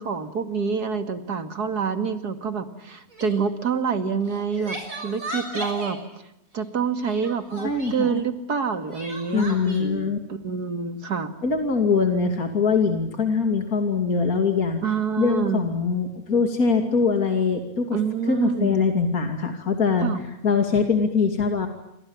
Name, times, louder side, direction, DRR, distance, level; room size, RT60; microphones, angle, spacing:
voice 1, 0.0-4.8 5.0-6.0 6.5-11.3 14.8-15.7 17.9-18.8 20.0-20.2, right 6 dB, 80° right, 9 dB, 2.8 m, -27 dB
Crying sobbing, 3.1-3.4 4.2-6.0 7.1-8.0 8.9-9.8, equal, 55° right, 7.1 m, -35 dB
voice 2, 7.6-8.2 9.3-10.2 11.4-14.8 15.2-18.0 18.3-20.1 20.4-21.7, left 5 dB, 65° left, 5 dB, 3.1 m, -22 dB
29.0 x 26.0 x 7.3 m, 0.85 s
omnidirectional pair, 1.7 m